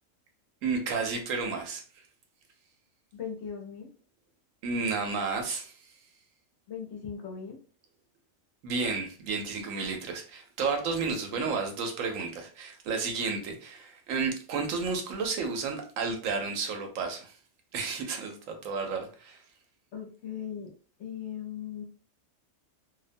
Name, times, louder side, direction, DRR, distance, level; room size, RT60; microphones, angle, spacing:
voice 1, 0.6-1.8 4.6-5.7 8.6-17.4 17.7-19.4, right 4 dB, 80° right, 1.0 m, -32 dB
voice 2, 3.1-3.9 6.7-7.6 11.1-11.6 19.9-20.7 21.0-21.8, left 8 dB, 65° left, 0.9 m, -39 dB
2.5 x 2.1 x 2.5 m
omnidirectional pair, 1.3 m